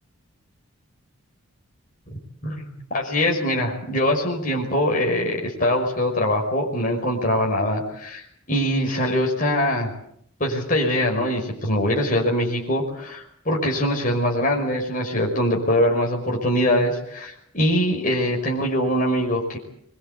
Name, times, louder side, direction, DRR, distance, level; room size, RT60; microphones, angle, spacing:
voice 1, 2.9-8.2 8.5-9.9 10.4-19.6, left 1 dB, 35° left, 0 dB, 5.6 m, -23 dB
24.0 x 23.5 x 8.3 m, 0.69 s
head